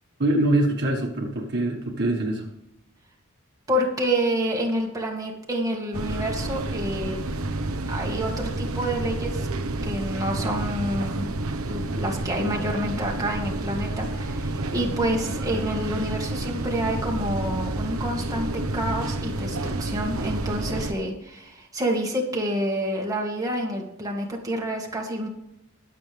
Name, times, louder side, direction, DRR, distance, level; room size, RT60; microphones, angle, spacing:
voice 1, 0.2-2.5, right 1 dB, 50° right, 0 dB, 1.7 m, -24 dB
voice 2, 3.7-7.2 7.7-9.5 9.8-11.3 11.6-25.3, right 1 dB, 15° right, -1 dB, 2.0 m, -28 dB
sound 1, 5.9-20.9, right 2 dB, 75° right, 1.1 m, -29 dB
21.5 x 7.8 x 3.5 m, 0.84 s
head